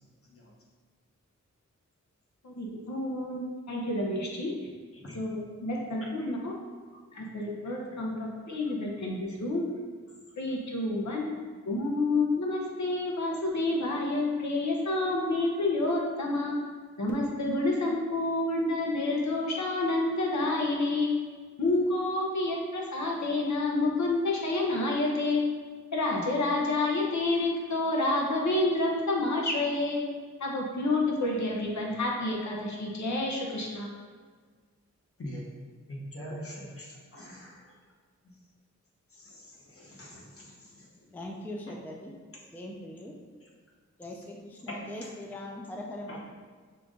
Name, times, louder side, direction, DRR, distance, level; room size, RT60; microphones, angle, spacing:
voice 1, 0.2-0.5 4.9-5.2 6.2-6.3 6.9-7.0 7.6-8.3 8.7-8.8 9.3-9.4 10.1-10.3 35.2-35.4 35.9-37.8 38.2-38.4 39.1-41.2 43.4-43.5 44.7-45.2 46.1-46.3, equal, 50° left, -3 dB, 1.0 m, -45 dB
voice 2, 2.4-4.5 5.1-6.5 7.1-9.6 10.4-16.6 17.0-21.1 21.6-25.4 25.9-30.1 30.4-33.9, left 2 dB, 75° left, -1 dB, 0.8 m, -29 dB
voice 3, 41.1-42.1 42.5-43.2 44.0-46.3, left 1 dB, 5° left, 0 dB, 0.4 m, -40 dB
5.7 x 2.5 x 3.6 m, 1.5 s
wide cardioid pair, 125°, 29 cm